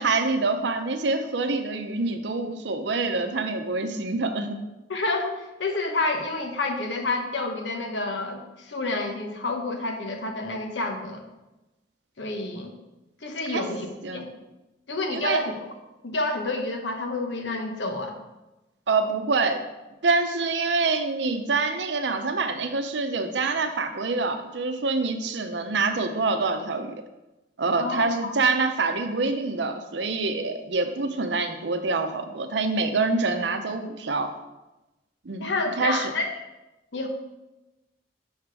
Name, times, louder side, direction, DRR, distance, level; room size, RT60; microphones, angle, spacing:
voice 1, 0.0-4.6 13.5-13.6 14.0-14.3 15.1-15.4 18.9-19.7 20.0-26.9 27.6-34.3 35.2-35.5 35.8-36.1, right 3 dB, 65° right, 7 dB, 0.7 m, -26 dB
voice 2, 4.9-11.2 12.2-12.7 13.2-14.3 14.9-15.5 16.0-18.1 27.8-28.3 35.4-36.3 36.9-37.1, left 2 dB, 75° left, 3 dB, 1.0 m, -29 dB
6.4 x 5.1 x 4.7 m, 1.0 s
head